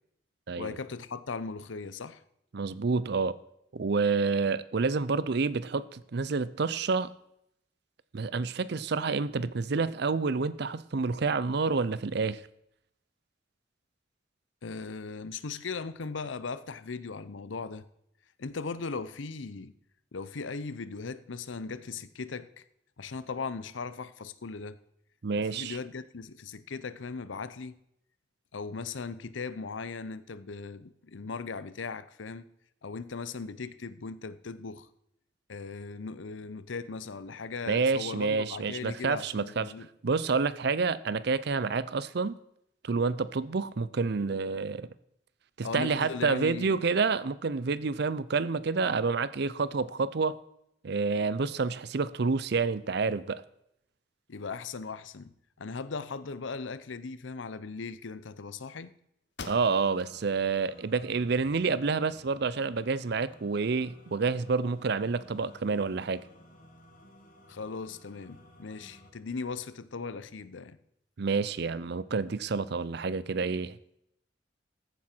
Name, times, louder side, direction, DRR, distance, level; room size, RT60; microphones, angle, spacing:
voice 1, 0.5-2.2 14.6-17.8 18.4-19.7 20.1-22.6 23.0-24.8 25.3-27.8 28.5-32.5 32.8-34.9 35.5-39.9 45.6-46.8 54.3-58.9 67.5-70.8, left 4 dB, 90° left, 0.7 m, -38 dB
voice 2, 2.5-3.4 3.7-7.1 8.1-12.4 25.2-25.8 37.7-39.7 40.0-42.3 42.8-44.9 45.6-50.3 50.8-53.4 59.5-66.2 71.2-73.8, right 4 dB, 60° right, 0.5 m, -28 dB
sound 1, 59.3-60.2 60.6-60.7 61.3-62.2, left 4 dB, 65° left, 1.1 m, -46 dB
sound 2, 59.4-69.1, left 1 dB, 45° left, 2.0 m, -55 dB
14.5 x 8.6 x 4.5 m
head